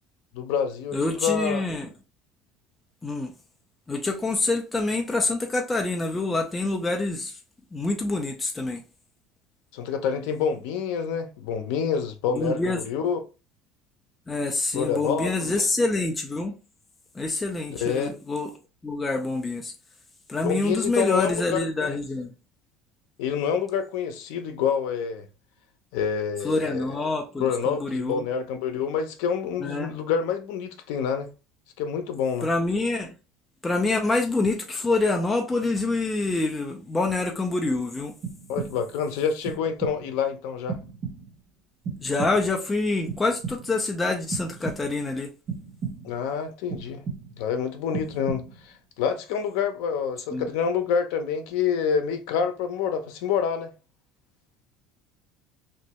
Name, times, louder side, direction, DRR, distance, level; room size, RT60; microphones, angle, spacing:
voice 1, 0.3-1.6 9.7-13.2 14.7-15.5 17.8-18.1 20.4-21.9 23.2-25.3 25.9-27.0 27.4-31.3 31.8-32.5 38.5-40.8 46.0-47.0 47.4-53.7, left 7 dB, 70° left, 0.6 m, -27 dB
voice 2, 0.9-1.9 3.0-3.3 3.9-7.3 7.7-8.8 12.3-12.8 14.3-16.5 17.2-18.5 18.8-19.7 20.3-22.3 26.4-28.2 29.6-29.9 32.4-33.1 33.6-38.1 42.0-45.3 50.3-50.5, left 2 dB, 10° left, 0.4 m, -26 dB
sound 1, 38.2-39.0 39.4-40.2 40.7-41.5 41.8-42.6 43.1-43.9 44.3-45.1 45.5-46.3 46.7-47.5 47.9-48.7, right 5 dB, 35° right, 0.9 m, -36 dB
3.2 x 2.6 x 2.9 m
cardioid pair, 180°, 0 cm